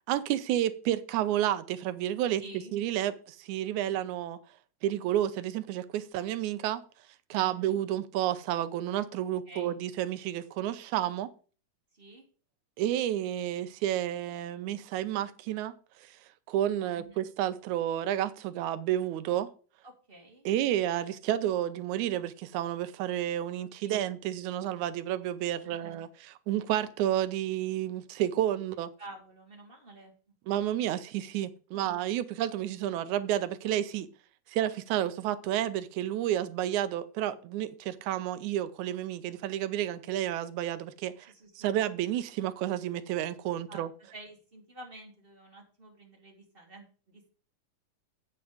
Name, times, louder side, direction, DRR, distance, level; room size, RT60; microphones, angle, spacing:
voice 1, 0.1-2.4 2.7-4.4 4.8-6.8 7.3-11.3 12.8-15.7 16.5-19.5 20.5-28.9 30.5-34.1 34.5-43.9, right 12 dB, 80° right, 2.1 m, -31 dB
voice 2, 2.4-2.7 3.8-3.9 7.3-7.7 9.5-9.7 11.9-12.3 16.9-17.2 19.8-20.5 23.6-24.2 25.6-26.0 29.0-30.1 31.7-32.0 36.2-36.3 37.2-37.4 41.2-41.7 43.5-47.3, right 2 dB, 20° right, 2.0 m, -50 dB
8.7 x 7.8 x 5.0 m
omnidirectional pair, 3.5 m